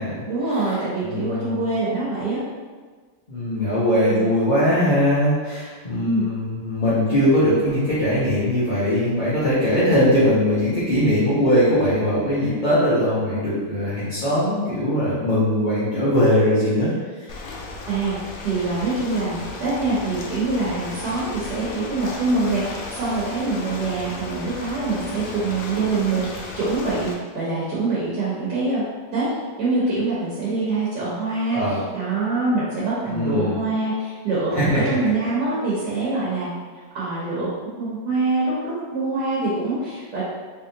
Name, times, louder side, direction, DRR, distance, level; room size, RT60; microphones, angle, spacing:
voice 1, 0.3-2.4 4.1-4.3 6.0-6.3 9.7-9.9 17.9-28.9 29.1-29.3 29.6-31.6 31.9-37.5 37.8-40.2, right 3 dB, 75° right, -8 dB, 1.6 m, -25 dB
voice 2, 1.0-1.7 3.3-17.4 31.5-31.8 33.1-33.6 34.5-34.9, equal, 40° left, -12 dB, 0.7 m, -21 dB
Ocean, 17.3-27.1, left 3 dB, 70° left, 0.8 m, -35 dB
3.5 x 3.3 x 2.7 m, 1.5 s
omnidirectional pair, 1.9 m